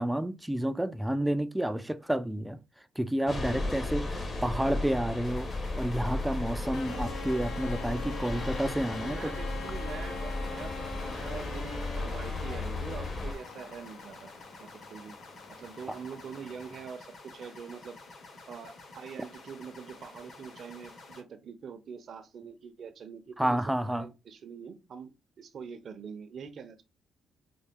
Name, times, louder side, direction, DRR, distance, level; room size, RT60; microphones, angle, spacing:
voice 1, 0.0-2.6 3.0-5.5 5.8-9.3 23.4-24.1, right 1 dB, 5° right, 0.3 m, -30 dB
sound 1, 3.3-13.3, left 2 dB, 35° left, 1.1 m, -35 dB
sound 2, 5.2-21.2, left 3 dB, 55° left, 1.5 m, -50 dB
sound 3, 6.7-16.8, left 4 dB, 75° left, 1.0 m, -44 dB
voice 2, 8.9-10.7 11.0-14.3 14.6-15.2 15.5-18.0 18.5-25.1 25.4-26.8, right 6 dB, 60° right, 0.6 m, -44 dB
3.9 x 2.1 x 3.5 m
cardioid pair, 90°, 0 cm